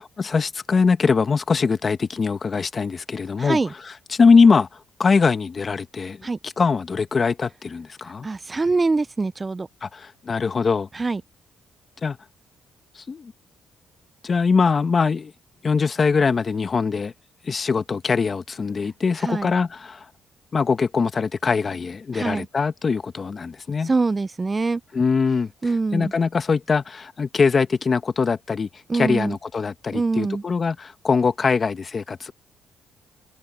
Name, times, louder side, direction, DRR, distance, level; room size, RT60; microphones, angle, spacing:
voice 1, 0.2-3.6 4.1-4.7 5.0-8.3 9.8-10.9 12.0-12.2 13.1-13.3 14.2-15.3 15.6-17.1 17.4-20.0 20.5-23.9 24.9-25.5 25.9-32.3, left 5 dB, 35° left, 1.5 m, -22 dB
voice 2, 3.4-3.7 6.2-6.4 8.2-9.7 10.9-11.2 19.2-19.5 22.1-22.5 23.8-24.8 25.6-26.1 28.9-29.4 29.9-30.4, right 3 dB, 25° right, 0.6 m, -24 dB
cardioid pair, 90°, 0 cm